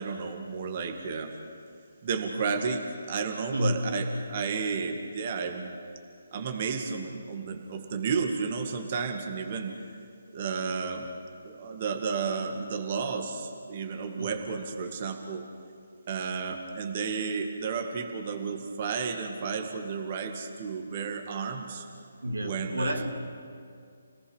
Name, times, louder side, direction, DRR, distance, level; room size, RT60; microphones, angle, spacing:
voice 1, 0.0-1.3 2.0-5.8 6.3-9.9 10.3-11.1 11.4-15.4 16.1-21.9 22.4-23.1, right 5 dB, 40° right, 4 dB, 2.1 m, -32 dB
voice 2, 3.5-4.0 14.2-14.4 22.2-23.1, equal, 90° right, 3 dB, 2.7 m, -30 dB
29.5 x 18.0 x 6.4 m, 2.3 s
figure-of-eight pair, 150°, 0 cm